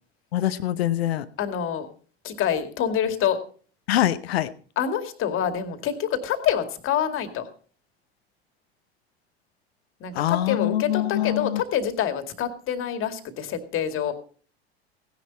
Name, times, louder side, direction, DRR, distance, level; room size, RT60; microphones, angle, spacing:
voice 1, 0.3-1.3 3.9-4.5 10.1-11.6, left 13 dB, 70° left, 13 dB, 0.8 m, -24 dB
voice 2, 1.4-1.9 2.2-3.4 4.8-7.5 10.0-14.1, left 9 dB, 40° left, 8 dB, 2.2 m, -26 dB
17.0 x 10.5 x 4.1 m, 0.43 s
figure-of-eight pair, 75°, 32 cm